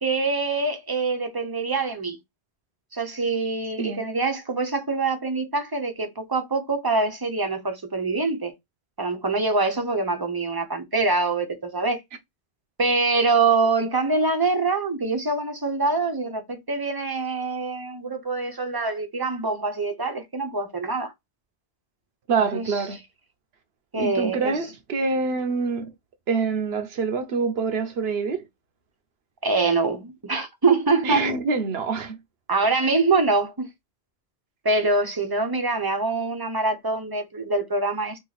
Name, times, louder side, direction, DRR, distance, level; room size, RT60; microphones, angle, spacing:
voice 1, 0.0-2.2 2.9-8.5 9.0-12.0 12.8-21.1 22.5-22.8 23.9-24.6 29.4-31.3 32.5-33.7 34.6-38.2, right 3 dB, 25° right, 0.7 m, -24 dB
voice 2, 22.3-23.0 23.9-25.9 26.3-28.4 31.0-32.2, right 4 dB, 65° right, 1.0 m, -25 dB
3.1 x 2.7 x 4.0 m
omnidirectional pair, 1.1 m